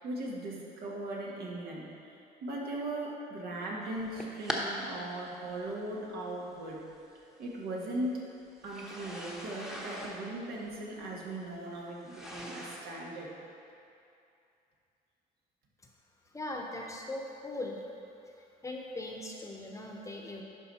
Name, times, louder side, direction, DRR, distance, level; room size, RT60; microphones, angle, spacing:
voice 1, 0.0-6.8 7.4-8.3 8.6-13.3, right 1 dB, 70° right, -3 dB, 1.8 m, -38 dB
sound 1, 3.9-4.6 5.6-5.7 6.9-7.0 8.6-13.0, equal, 5° right, 1.0 m, -41 dB
voice 2, 16.3-17.8 18.6-20.4, left 2 dB, 20° left, 0 dB, 1.0 m, -39 dB
11.5 x 5.0 x 4.3 m, 2.6 s
cardioid pair, 110°, 17 cm